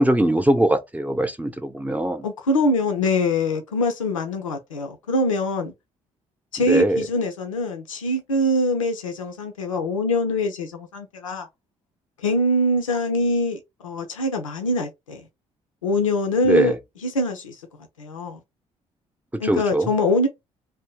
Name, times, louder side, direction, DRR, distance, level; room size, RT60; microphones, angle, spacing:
voice 1, 0.0-2.3 6.7-7.0 16.4-16.8 19.3-19.9, right 1 dB, 10° right, 0.7 m, -21 dB
voice 2, 2.2-5.7 6.5-11.5 12.2-15.2 15.8-16.8 17.0-17.6 18.0-18.4 19.4-20.3, left 1 dB, 85° left, 0.6 m, -23 dB
2.7 x 2.7 x 3.6 m
figure-of-eight pair, 45°, 17 cm